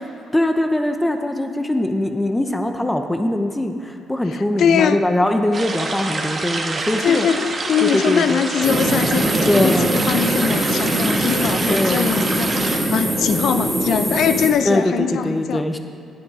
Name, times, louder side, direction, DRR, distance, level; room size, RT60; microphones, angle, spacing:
voice 1, 0.3-7.3 7.8-8.4 9.5-10.0 11.7-12.1 14.6-15.8, left 1 dB, 10° left, 6 dB, 0.7 m, -21 dB
voice 2, 4.3-5.0 7.0-15.6, left 8 dB, 70° left, 10 dB, 0.5 m, -22 dB
sound 1, 5.5-12.8, right 3 dB, 40° right, 1.3 m, -27 dB
sound 2, 8.6-14.5, right 1 dB, 10° right, 2.2 m, -21 dB
10.0 x 9.4 x 4.9 m, 2.6 s
cardioid pair, 90°, 0 cm